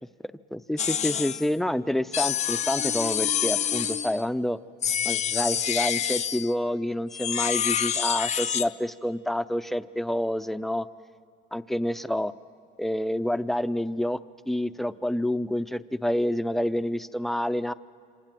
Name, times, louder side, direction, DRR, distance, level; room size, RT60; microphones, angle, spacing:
voice 1, 0.5-4.6 5.0-10.9 11.5-12.3 12.8-14.2 14.5-17.7, left 1 dB, ahead, 12 dB, 0.6 m, -28 dB
sound 1, 0.8-1.5 2.1-4.2 4.8-6.5 7.1-8.7, left 9 dB, 40° left, 0.6 m, -27 dB
27.0 x 26.0 x 7.6 m, 2.2 s
cardioid pair, 110°, 17 cm